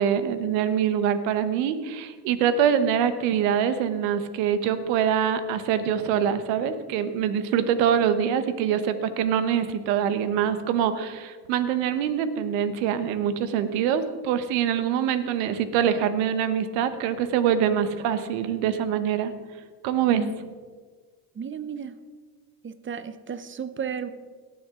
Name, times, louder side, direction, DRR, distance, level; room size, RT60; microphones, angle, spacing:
voice 1, 0.0-19.3 19.8-20.2, right 8 dB, 80° right, 11 dB, 1.1 m, -24 dB
voice 2, 21.3-22.0 22.6-24.1, right 6 dB, 25° right, 13 dB, 0.8 m, -33 dB
18.0 x 7.1 x 3.7 m, 1.5 s
supercardioid pair, 75°, 45 cm